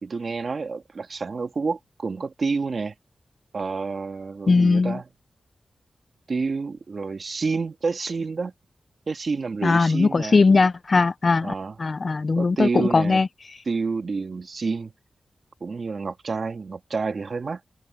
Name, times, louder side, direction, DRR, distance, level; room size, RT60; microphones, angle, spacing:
voice 1, 0.0-2.9 3.5-5.1 6.3-8.5 9.1-10.4 11.4-11.8 12.4-13.2 13.7-14.9 15.6-17.6, right 4 dB, 60° right, 2.1 m, -28 dB
voice 2, 4.5-5.0 9.6-11.5 11.8-13.3, left 4 dB, 50° left, 0.7 m, -19 dB
wide cardioid pair, 75°, 0 cm